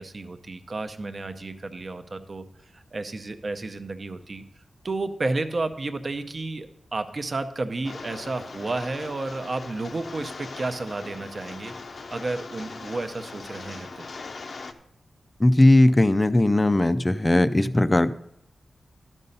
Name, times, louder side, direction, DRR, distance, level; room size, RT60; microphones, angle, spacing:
voice 1, 0.0-2.4 2.7-4.4 4.8-11.7 12.1-14.1, right 3 dB, 45° right, 8 dB, 0.7 m, -32 dB
Rain, 7.8-14.7, left 4 dB, 65° left, 0.6 m, -40 dB
voice 2, 15.4-18.1, left 1 dB, 20° left, 12 dB, 0.4 m, -18 dB
12.0 x 5.4 x 5.4 m, 0.78 s
wide cardioid pair, 110°, 0 cm